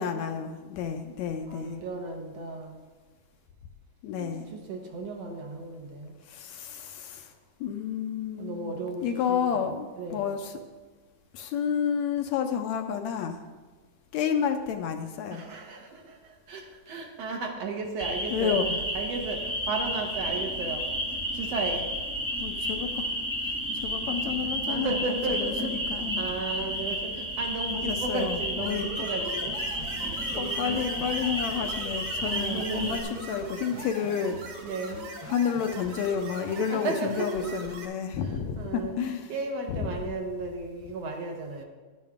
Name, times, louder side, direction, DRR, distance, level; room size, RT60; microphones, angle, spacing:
voice 1, 0.0-1.8 4.0-4.5 6.3-7.3 7.6-8.7 9.0-10.5 11.3-13.4 14.1-15.4 18.3-18.8 22.4-23.1 23.8-25.0 25.3-26.2 27.7-29.1 29.9-30.1 30.4-34.4 35.3-39.3 39.7-39.8, left 7 dB, 75° left, 6 dB, 1.8 m, -30 dB
voice 2, 1.5-2.9 4.1-6.1 8.4-10.3 15.3-18.6 18.9-20.9 21.3-21.9 24.7-29.6 29.9-31.2 32.3-33.0 33.7-33.9 34.6-35.1 36.7-37.8 38.2-41.6, right 3 dB, 65° right, 2 dB, 2.0 m, -35 dB
sound 1, 18.0-33.0, equal, 5° right, 0.4 m, -32 dB
sound 2, 28.6-37.8, right 2 dB, 50° right, 1.9 m, -41 dB
11.5 x 10.5 x 3.6 m, 1.3 s
omnidirectional pair, 3.5 m